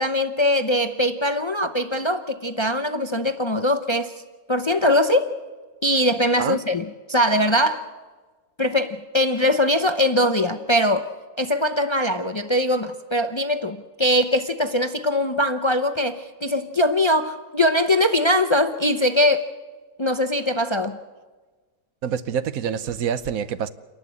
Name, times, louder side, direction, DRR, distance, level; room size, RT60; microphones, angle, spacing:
voice 1, 0.0-4.1 4.5-5.3 5.8-7.8 8.6-11.1 11.4-19.5 20.0-21.0, left 1 dB, 35° left, 9 dB, 0.4 m, -21 dB
voice 2, 22.0-23.7, right 8 dB, 65° right, 14 dB, 1.2 m, -26 dB
28.5 x 11.5 x 8.4 m, 1.3 s
omnidirectional pair, 1.7 m